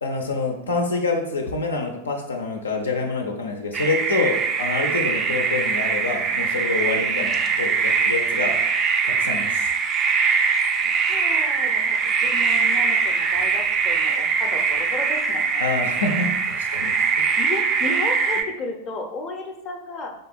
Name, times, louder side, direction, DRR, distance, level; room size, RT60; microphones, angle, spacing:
voice 1, 0.0-8.6 9.0-9.7 15.6-17.4, left 3 dB, 75° left, 2 dB, 0.6 m, -27 dB
sound 1, 3.7-18.4, right 5 dB, 30° right, 0.4 m, -22 dB
voice 2, 10.8-15.6 17.4-20.1, left 2 dB, 30° left, 2 dB, 0.7 m, -33 dB
3.6 x 3.4 x 4.1 m, 0.81 s
figure-of-eight pair, 90°, 0 cm